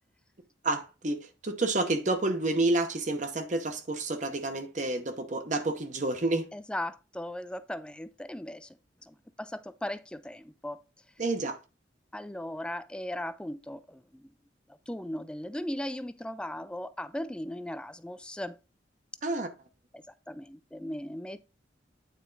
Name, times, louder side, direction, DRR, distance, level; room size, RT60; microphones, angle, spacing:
voice 1, 0.6-6.5 11.2-11.6 19.2-19.5, right 2 dB, 40° right, 0.9 m, -29 dB
voice 2, 6.5-8.8 9.1-10.8 12.1-14.3 14.9-18.6 19.9-21.4, left 1 dB, 5° left, 0.4 m, -38 dB
9.2 x 4.3 x 3.9 m
head